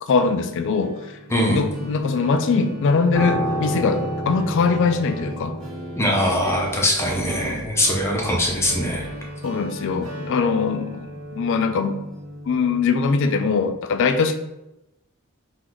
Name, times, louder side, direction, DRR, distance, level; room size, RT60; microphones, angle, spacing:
voice 1, 0.0-1.2 1.5-5.6 9.4-11.1 11.4-12.0 12.5-14.4, left 4 dB, 60° left, 8 dB, 0.3 m, -21 dB
sound 1, 0.8-13.0, right 1 dB, 65° right, 1.4 m, -37 dB
Piano, 3.1-12.5 12.8-13.0, right 1 dB, 80° right, 1.2 m, -32 dB
voice 2, 6.0-9.1, left 1 dB, 10° left, -1 dB, 0.6 m, -22 dB
3.9 x 2.5 x 4.4 m, 0.91 s
head